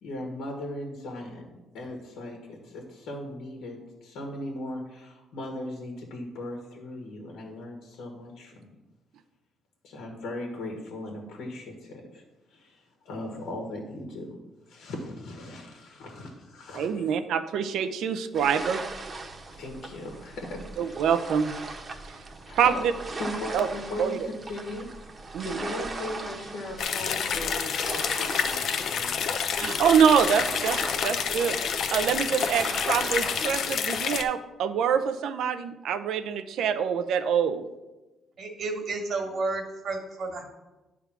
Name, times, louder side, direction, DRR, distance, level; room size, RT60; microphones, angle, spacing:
voice 1, 0.0-8.7 9.8-12.2 12.5-14.4 14.6-17.0 19.5-20.9 22.5-22.9 23.2-24.9 25.4-29.3, left 1 dB, 85° left, 1 dB, 1.5 m, -38 dB
voice 2, 16.8-18.9 20.8-21.5 22.5-22.7 23.5-23.7 24.0-24.2 25.3-25.6 29.6-31.6 31.9-37.6, right 7 dB, 80° right, 11 dB, 0.6 m, -25 dB
sound 1, 18.3-33.6, right 3 dB, 35° right, 1.0 m, -39 dB
sound 2, 26.8-34.2, left 7 dB, 65° left, 0.6 m, -28 dB
voice 3, 38.4-40.4, right 3 dB, 65° right, 4 dB, 1.8 m, -31 dB
9.8 x 3.6 x 6.0 m, 1.1 s
cardioid pair, 90°, 0 cm